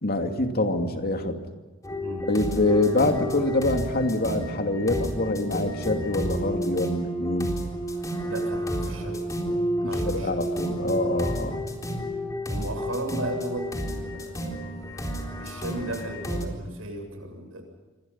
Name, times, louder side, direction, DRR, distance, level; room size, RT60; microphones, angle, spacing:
voice 1, 0.0-1.4 2.2-7.6 9.8-11.7, left 2 dB, 50° left, 4 dB, 2.7 m, -25 dB
sound 1, 1.8-16.5, equal, 15° left, 3.9 m, -31 dB
voice 2, 2.0-2.7 8.2-9.2 9.8-10.4 12.5-14.7 15.4-17.6, right 2 dB, 80° right, 4 dB, 7.9 m, -35 dB
28.0 x 24.0 x 5.8 m, 1.3 s
head